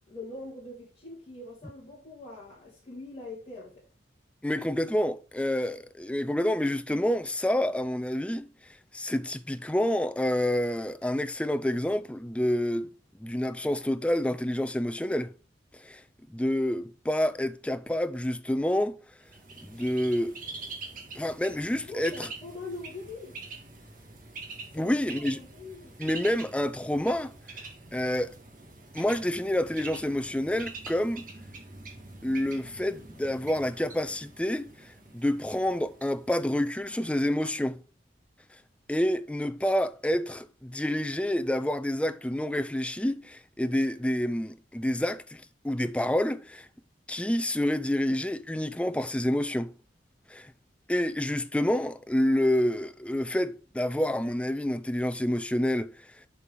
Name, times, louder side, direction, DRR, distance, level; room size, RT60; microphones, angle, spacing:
voice 1, 0.1-3.8 21.9-23.4 24.7-25.9, left 2 dB, 25° left, 2.4 m, -43 dB
voice 2, 4.4-8.5 8.9-12.9 13.2-15.3 15.8-16.0 16.3-19.0 19.6-20.4 21.1-22.3 24.7-25.4 26.0-27.3 27.9-28.3 28.9-31.3 32.2-37.8 38.9-46.7 47.1-49.7 50.3-50.5 50.9-56.1, left 1 dB, 5° left, 0.3 m, -28 dB
Bird, 19.3-37.0, right 3 dB, 45° right, 1.8 m, -45 dB
7.0 x 4.6 x 5.2 m
head